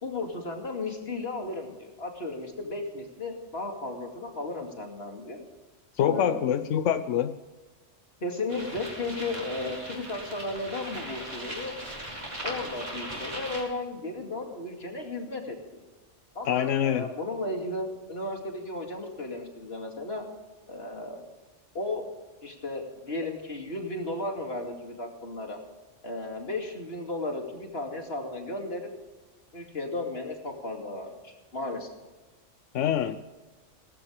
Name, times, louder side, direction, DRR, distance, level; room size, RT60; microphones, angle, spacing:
voice 1, 0.0-5.4 6.0-6.5 8.2-11.7 12.4-15.8 16.3-20.3 20.7-21.2 21.7-22.0 22.4-25.6 26.0-28.9 29.5-31.9, left 2 dB, 55° left, 2 dB, 2.7 m, -34 dB
voice 2, 6.0-7.4 16.5-17.1 32.7-33.2, left 10 dB, 90° left, 11 dB, 1.0 m, -25 dB
sound 1, 8.5-13.6, right 1 dB, 35° right, 4.2 m, -38 dB
18.5 x 15.0 x 3.4 m, 1.2 s
omnidirectional pair, 1.2 m